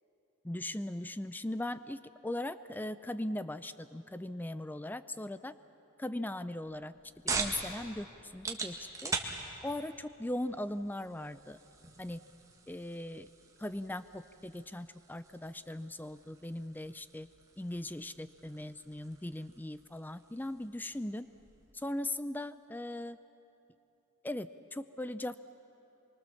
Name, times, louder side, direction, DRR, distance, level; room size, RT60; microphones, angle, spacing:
voice 1, 0.5-5.5 6.0-6.9 7.3-9.1 9.6-11.6 12.0-12.2 12.7-13.3 13.6-17.3 17.6-21.3 21.7-23.2 24.2-25.4, left 1 dB, 10° left, 13 dB, 0.4 m, -39 dB
sound 1, 6.6-21.8, right 4 dB, 15° right, 1.7 m, -44 dB
25.0 x 23.5 x 7.1 m, 2.9 s
head